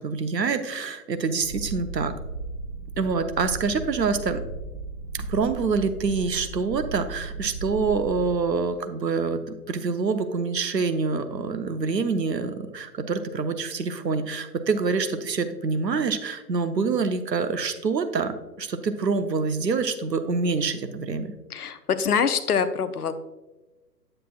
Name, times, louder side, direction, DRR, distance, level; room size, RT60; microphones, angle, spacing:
voice 1, 0.0-2.1 3.0-4.4 5.3-9.4 9.7-21.3, right 4 dB, 75° right, 9 dB, 0.8 m, -26 dB
Purr, 1.4-8.4, right 3 dB, 20° right, 0.8 m, -36 dB
voice 2, 21.5-23.1, left 6 dB, 65° left, 11 dB, 0.7 m, -24 dB
8.7 x 7.6 x 2.4 m, 1.1 s
figure-of-eight pair, 125°, 50 cm